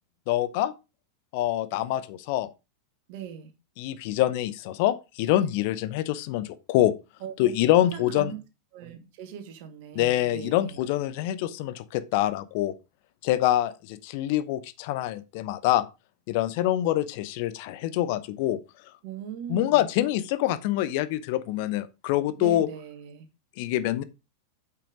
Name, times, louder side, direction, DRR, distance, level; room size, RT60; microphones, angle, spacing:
voice 1, 0.3-0.7 1.3-2.5 3.8-6.9 7.4-8.3 9.9-12.7 13.2-15.9 16.3-18.6 19.5-22.7 23.6-24.0, left 13 dB, 45° left, 0.8 m, -25 dB
voice 2, 3.1-3.5 7.2-7.5 7.9-8.4 8.7-10.8 19.0-19.9 22.4-23.3, right 9 dB, 45° right, 2.0 m, -39 dB
8.6 x 5.8 x 5.0 m
figure-of-eight pair, 90°, 0 cm